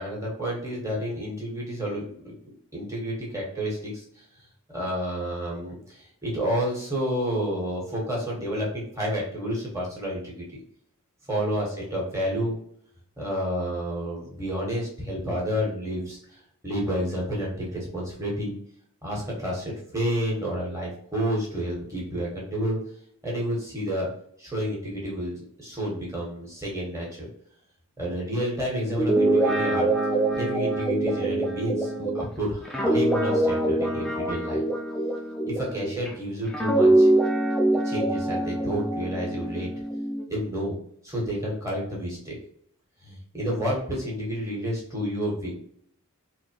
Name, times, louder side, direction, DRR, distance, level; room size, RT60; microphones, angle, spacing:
voice 1, 0.0-2.4 2.7-4.2 4.7-10.4 11.3-12.6 13.2-16.2 16.6-18.5 19.0-22.8 23.2-24.1 24.4-27.3 28.0-29.9 30.3-34.6 35.4-37.1 37.8-39.7 40.3-40.8 41.0-42.4 43.0-45.5, equal, 15° right, -4 dB, 1.4 m, -30 dB
Guitar, 28.9-36.1 36.5-40.2, right 1 dB, 5° left, 0.4 m, -24 dB
4.1 x 2.8 x 2.9 m, 0.65 s
head